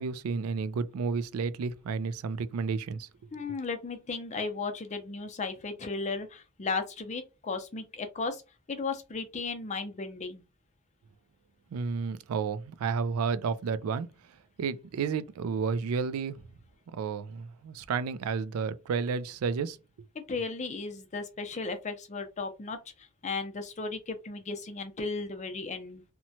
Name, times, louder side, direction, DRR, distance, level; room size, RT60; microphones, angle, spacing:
voice 1, 0.0-3.4 11.7-14.1 14.6-16.4 16.9-19.8, right 5 dB, 85° right, 0.3 m, -31 dB
voice 2, 3.3-8.4 8.7-10.4 20.1-26.0, left 4 dB, 35° left, 0.5 m, -35 dB
2.8 x 2.1 x 2.7 m
head